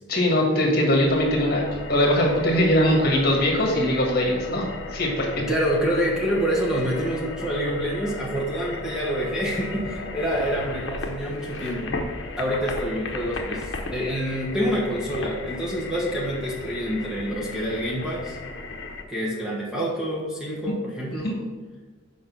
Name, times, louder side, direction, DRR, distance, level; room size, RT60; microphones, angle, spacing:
voice 1, 0.1-1.6 1.9-4.6 4.9-5.3 20.7-20.8 21.2-21.3, left 1 dB, 50° left, -1 dB, 1.6 m, -21 dB
sound 1, 1.0-19.0, left 3 dB, 65° left, 0.9 m, -35 dB
voice 2, 5.5-12.0 12.4-18.3 19.1-21.3, equal, 5° right, -4 dB, 1.2 m, -27 dB
6.4 x 5.2 x 6.1 m, 1.4 s
head